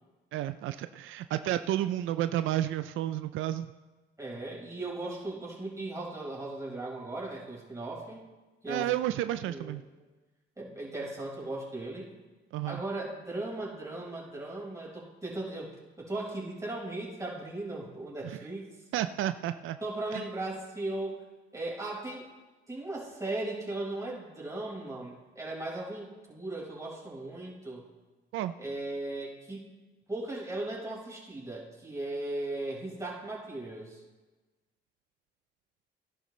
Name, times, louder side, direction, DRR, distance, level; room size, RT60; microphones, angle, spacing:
voice 1, 0.3-3.7 8.7-9.8 12.5-12.8 18.2-18.4 18.9-19.8 20.1-20.2 28.3-28.5, right 13 dB, 85° right, 11 dB, 0.4 m, -31 dB
voice 2, 4.2-8.2 8.6-8.9 9.4-10.1 10.6-12.1 12.7-15.7 16.0-18.7 19.8-21.3 21.5-22.3 22.7-27.9 28.6-29.7 30.1-34.0, right 2 dB, 15° right, -4 dB, 4.9 m, -37 dB
17.5 x 11.0 x 3.2 m, 1.2 s
cardioid pair, 90°, 20 cm